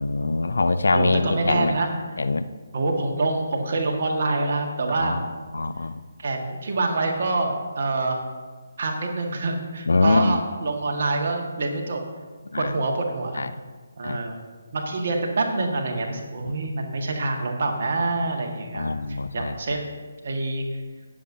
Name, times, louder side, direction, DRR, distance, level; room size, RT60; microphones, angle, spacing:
voice 1, 0.0-1.7 2.2-2.4 5.0-5.3 5.5-6.0 9.9-10.4 12.5-12.8 13.4-13.5 14.0-14.2 18.7-19.5, left 3 dB, 65° left, 11 dB, 0.5 m, -23 dB
voice 2, 0.9-2.0 2.7-5.2 6.2-8.2 8.8-12.0 12.6-13.4 14.0-14.4 14.7-19.9 20.2-20.6, right 2 dB, 50° right, 2 dB, 1.5 m, -26 dB
18.5 x 7.4 x 2.7 m, 1.4 s
figure-of-eight pair, 145°, 0 cm